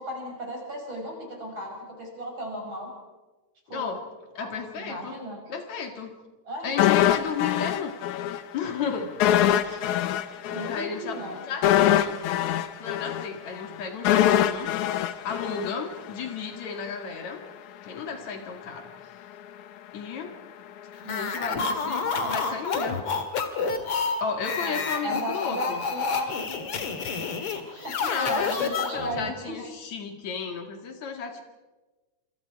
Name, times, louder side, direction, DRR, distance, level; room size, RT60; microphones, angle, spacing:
voice 1, 0.0-2.9 3.7-4.0 4.4-4.5 4.8-5.4 6.4-6.7 9.6-9.8 10.5-11.4 21.0-22.5 24.6-26.7 27.1-29.7, equal, 40° right, 0 dB, 6.8 m, -36 dB
voice 2, 3.7-4.0 4.3-5.2 5.5-6.1 6.6-7.9 8.5-9.1 10.7-12.2 12.8-14.7 15.2-17.4 17.8-18.9 19.9-20.4 21.1-23.0 24.2-25.8 28.0-31.4, left 6 dB, 70° left, 5 dB, 3.4 m, -33 dB
sound 1, 6.8-8.4 8.7-8.8 9.2-16.3 16.6-16.7, left 11 dB, 85° left, 2.4 m, -23 dB
sound 2, 21.0-29.3, left 5 dB, 55° left, 2.7 m, -29 dB
27.0 x 26.0 x 4.7 m, 1.2 s
omnidirectional pair, 3.4 m